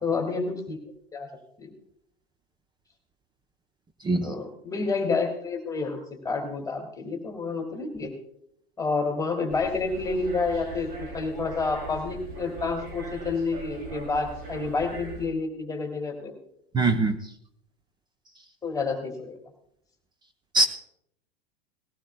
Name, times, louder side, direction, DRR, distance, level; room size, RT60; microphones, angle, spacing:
voice 1, 0.0-0.8 1.1-1.3 1.6-1.7 4.1-6.0 6.2-8.1 8.8-10.9 11.1-16.3 18.6-19.4, left 4 dB, 10° left, 2 dB, 2.2 m, -29 dB
sound 1, 9.5-15.3, right 3 dB, 30° right, 2.8 m, -40 dB
voice 2, 16.7-17.2 20.5-20.6, right 3 dB, 15° right, 7 dB, 0.7 m, -22 dB
19.0 x 16.5 x 2.2 m, 0.72 s
figure-of-eight pair, 90°, 30 cm